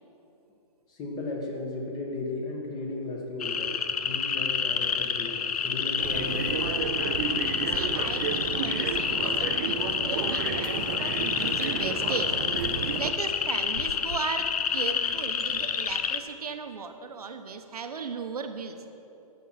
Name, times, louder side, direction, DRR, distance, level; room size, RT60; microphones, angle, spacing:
voice 1, 0.9-6.6, left 2 dB, 20° left, 0 dB, 1.6 m, -35 dB
sound 1, 3.4-16.2, left 7 dB, 75° left, 0.7 m, -29 dB
sound 2, 6.0-13.1, right 7 dB, 35° right, 0.6 m, -32 dB
voice 2, 7.7-12.3 13.0-18.8, right 5 dB, 75° right, 7 dB, 1.1 m, -36 dB
14.5 x 6.4 x 5.9 m, 2.9 s
hypercardioid pair, 140°, 19 cm